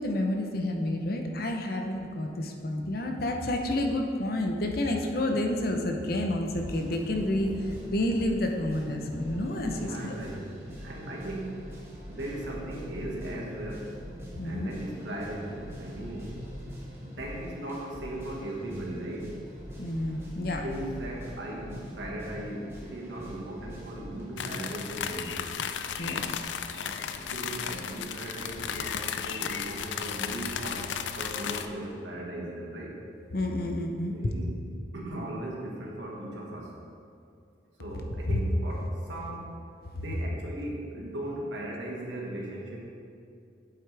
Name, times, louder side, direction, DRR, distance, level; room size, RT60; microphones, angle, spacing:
voice 1, 0.0-10.1 14.4-14.7 19.8-20.6 26.0-26.2 33.3-34.3 38.3-38.4, left 1 dB, 55° left, 3 dB, 0.7 m, -29 dB
sound 1, 6.4-24.8, equal, 15° right, 1.1 m, -43 dB
voice 2, 9.6-11.6 12.0-13.9 14.4-16.3 17.0-19.3 20.6-25.4 26.7-33.0 34.1-34.5 34.9-36.7 37.8-39.5 39.9-42.8, right 1 dB, 80° right, -2 dB, 1.6 m, -38 dB
sound 2, 24.4-31.7, left 7 dB, 80° left, 0.4 m, -34 dB
8.5 x 7.9 x 3.4 m, 2.4 s
head